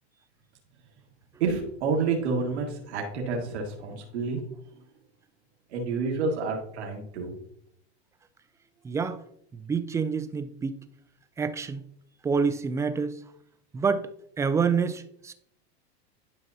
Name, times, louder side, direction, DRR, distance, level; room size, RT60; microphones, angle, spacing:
voice 1, 1.4-4.4 5.7-7.3, right 4 dB, 85° right, 1.7 m, -29 dB
voice 2, 8.8-9.2 9.5-10.8 11.4-11.8 12.2-13.2 13.7-14.1 14.4-15.3, right 5 dB, 10° right, 0.3 m, -27 dB
11.0 x 5.2 x 2.7 m
supercardioid pair, 125°, 33 cm